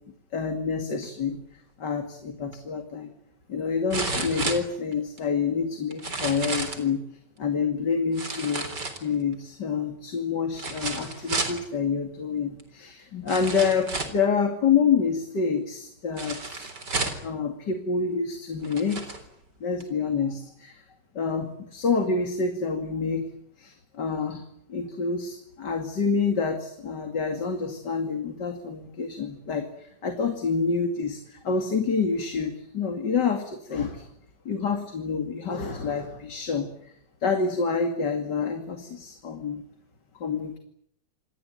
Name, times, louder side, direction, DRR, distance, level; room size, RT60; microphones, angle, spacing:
voice 1, 0.3-1.4 1.8-3.1 3.5-7.0 7.4-8.6 9.0-13.9 14.1-16.4 17.2-19.0 19.6-20.4 21.2-23.2 24.0-24.4 24.7-29.6 30.0-31.2 31.4-33.9 34.5-36.7 37.2-39.6 40.2-40.6, left 5 dB, 70° left, 5 dB, 3.1 m, -27 dB
sound 1, 2.5-2.6 3.9-5.2 5.9-6.9 8.1-9.3 10.5-11.6 12.6-12.7 13.3-14.2 16.2-17.3 18.1-18.2 18.6-19.2 19.8-19.9, right 3 dB, 70° right, 4.5 m, -31 dB
27.5 x 21.5 x 9.2 m, 0.71 s
omnidirectional pair, 1.9 m